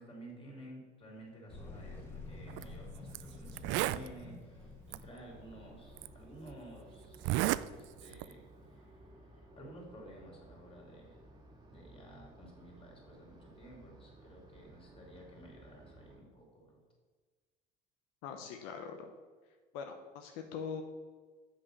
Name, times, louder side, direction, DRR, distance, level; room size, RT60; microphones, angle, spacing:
voice 1, 0.0-11.2 11.7-16.8, right 1 dB, 25° left, -1 dB, 3.1 m, -53 dB
sound 1, 1.5-6.6, left 2 dB, 10° left, 1.8 m, -49 dB
Zipper (clothing), 2.5-2.6 3.1-3.2 3.5-4.1 4.9-5.0 6.0-6.1 7.1-7.6 8.0-8.3, right 16 dB, 70° right, 0.4 m, -32 dB
sound 2, 5.3-16.2, right 1 dB, 20° right, 1.8 m, -57 dB
voice 2, 18.2-19.1 19.7-20.8, left 6 dB, 80° left, 5 dB, 0.9 m, -42 dB
7.5 x 6.0 x 6.6 m, 1.4 s
cardioid pair, 115°, 20 cm